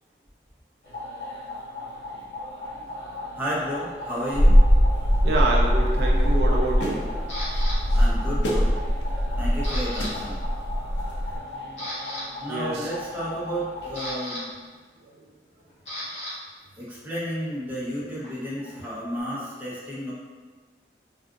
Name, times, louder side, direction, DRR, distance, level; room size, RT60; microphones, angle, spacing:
sound 1, 0.8-14.2, left 1 dB, 70° left, 1.3 m, -38 dB
voice 1, 3.3-4.6 7.9-8.7 9.4-10.4 12.4-14.5 16.8-20.1, equal, 10° right, -8 dB, 0.6 m, -32 dB
sound 2, 4.3-11.4, equal, 85° left, 0.5 m, -21 dB
voice 2, 5.2-7.0 7.9-8.0 12.5-12.9, right 2 dB, 70° right, -2 dB, 0.5 m, -27 dB
Camera, 7.3-7.8 8.4-8.7 9.0-10.1 10.4-10.6 11.1-11.2 11.6-12.2 13.4-16.3 16.6-19.2, equal, 35° left, 0.9 m, -37 dB
3.6 x 2.4 x 2.5 m, 1.4 s
head